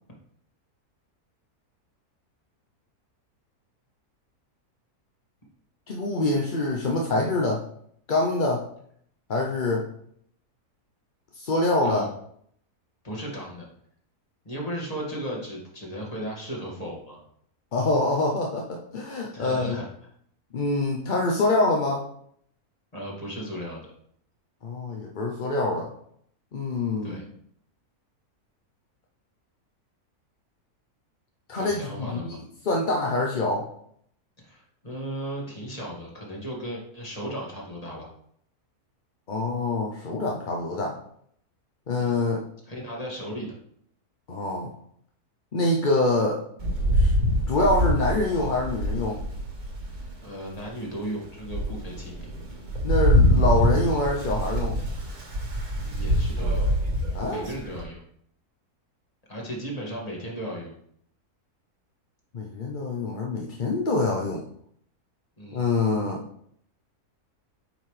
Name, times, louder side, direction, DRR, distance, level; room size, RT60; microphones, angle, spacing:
voice 1, 5.9-7.6 8.1-8.7 9.3-9.9 11.3-12.0 17.7-19.8 20.5-22.0 24.6-25.9 26.5-27.2 31.5-32.4 32.6-33.7 39.3-41.0 41.9-42.4 44.3-44.7 45.5-46.4 46.9-47.1 47.5-49.2 52.8-54.8 57.1-57.5 62.3-64.4 65.5-66.2, left 2 dB, 45° left, -1 dB, 0.7 m, -25 dB
voice 2, 13.0-13.7 14.4-17.2 19.3-19.9 22.9-23.9 27.0-27.2 31.5-32.4 34.4-38.1 42.0-42.1 42.6-43.5 50.2-52.3 55.8-56.7 57.3-58.0 59.3-60.7 65.4-65.7, equal, 25° left, -3 dB, 2.0 m, -36 dB
Rain, 46.6-50.1 50.7-50.8 51.2-57.8, equal, 70° right, 2.1 m, -24 dB
8.8 x 5.8 x 3.3 m, 0.68 s
omnidirectional pair, 1.6 m